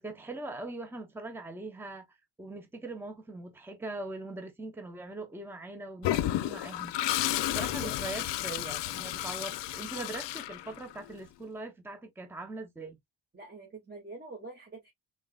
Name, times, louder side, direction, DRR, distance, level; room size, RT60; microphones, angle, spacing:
voice 1, 0.0-2.0 2.4-7.2 7.5-13.0, right 2 dB, 5° right, 0.7 m, -41 dB
Toilet flush, 6.0-11.1, left 14 dB, 75° left, 0.6 m, -32 dB
voice 2, 13.3-14.9, right 3 dB, 25° right, 1.9 m, -45 dB
3.8 x 3.7 x 2.3 m
cardioid pair, 110°, 43 cm